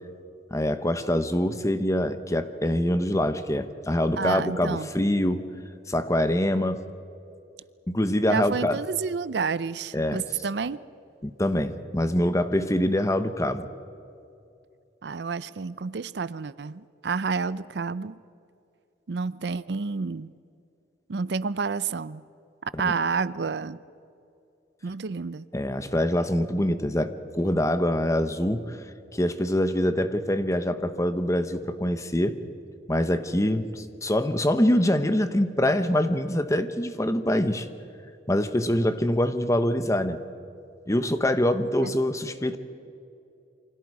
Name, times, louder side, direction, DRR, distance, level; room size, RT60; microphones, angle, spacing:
voice 1, 0.5-5.5 5.9-6.9 7.9-8.8 9.9-10.2 11.2-13.7 25.5-28.8 29.1-32.4 32.9-37.7 38.3-40.2 40.9-42.6, left 1 dB, 15° left, 10 dB, 1.0 m, -24 dB
voice 2, 4.2-4.9 8.3-10.8 15.0-18.2 19.1-20.3 21.1-22.2 22.6-23.8 24.8-25.5 41.8-42.0, right 5 dB, 65° right, 17 dB, 0.5 m, -29 dB
28.5 x 25.0 x 4.8 m, 2.6 s
head